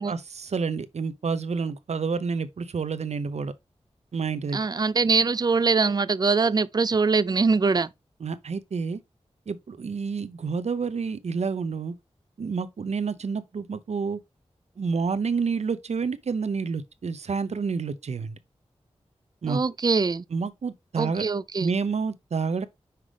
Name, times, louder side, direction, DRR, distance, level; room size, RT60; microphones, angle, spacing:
voice 1, 0.1-3.5 4.1-4.6 8.2-9.0 9.5-11.9 12.4-14.2 14.8-18.4 19.4-19.6 20.3-21.3 21.6-22.7, right 5 dB, 75° right, 0.7 m, -29 dB
voice 2, 4.5-7.9 19.5-20.2 21.0-21.7, right 4 dB, 35° right, 0.4 m, -23 dB
5.7 x 5.0 x 3.3 m
wide cardioid pair, 55°, 11 cm